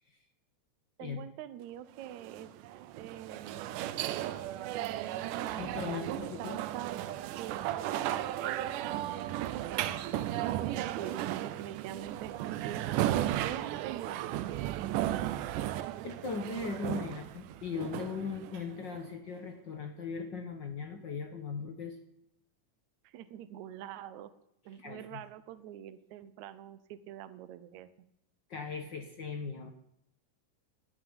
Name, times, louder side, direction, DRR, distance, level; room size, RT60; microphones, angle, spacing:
voice 1, 1.0-2.5 3.0-3.8 4.7-9.9 10.9-14.4 23.0-24.3 24.7-28.1 29.6-29.7, right 11 dB, 75° right, 12 dB, 2.0 m, -45 dB
sound 1, 2.0-19.0, right 13 dB, 90° right, 2.3 m, -35 dB
voice 2, 5.6-6.6 16.0-22.0 24.8-25.2 28.5-29.7, left 5 dB, 55° left, 6 dB, 1.2 m, -38 dB
12.0 x 10.0 x 9.7 m, 0.78 s
omnidirectional pair, 3.6 m